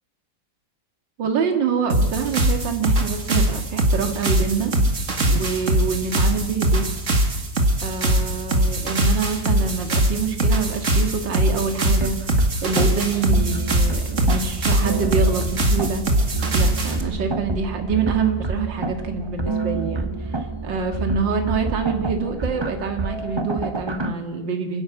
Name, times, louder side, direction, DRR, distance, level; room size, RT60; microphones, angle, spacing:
voice 1, 1.2-4.7 5.3-6.9 7.8-16.1 16.5-24.8, right 5 dB, 65° right, 5 dB, 2.5 m, -26 dB
sound 1, 1.9-17.0, right 1 dB, 40° right, 2.3 m, -21 dB
sound 2, 12.0-24.1, right 3 dB, 20° right, 0.7 m, -28 dB
29.0 x 11.0 x 8.6 m, 1.0 s
omnidirectional pair, 2.1 m